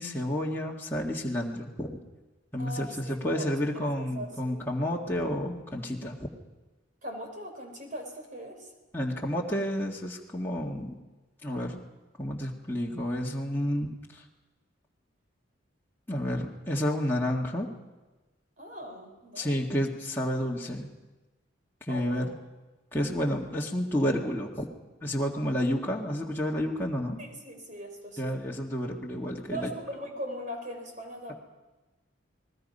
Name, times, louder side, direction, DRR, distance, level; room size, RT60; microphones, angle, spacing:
voice 1, 0.0-2.0 2.5-6.3 8.9-11.0 11.4-11.8 12.2-14.2 16.1-17.7 19.4-20.9 21.9-22.4 22.9-24.7 25.0-27.2 28.2-29.7, equal, 10° left, -4 dB, 1.9 m, -30 dB
voice 2, 2.6-4.6 7.0-8.7 18.6-19.7 21.9-22.3 26.1-26.2 27.2-28.4 29.5-31.3, equal, 40° right, 3 dB, 4.6 m, -40 dB
29.5 x 20.5 x 5.5 m, 1.2 s
head